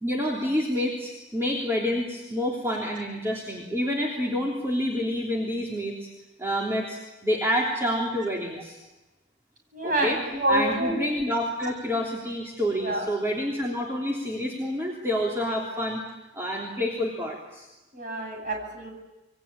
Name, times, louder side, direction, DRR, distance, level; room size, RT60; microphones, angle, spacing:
voice 1, 0.0-6.1 6.4-8.8 9.8-10.2 10.5-16.0 16.3-17.6, equal, 15° right, -2 dB, 3.3 m, -28 dB
voice 2, 9.7-10.9 12.8-13.1 17.9-18.9, right 1 dB, 45° right, 1 dB, 7.9 m, -27 dB
28.0 x 22.5 x 8.8 m, 1.1 s
head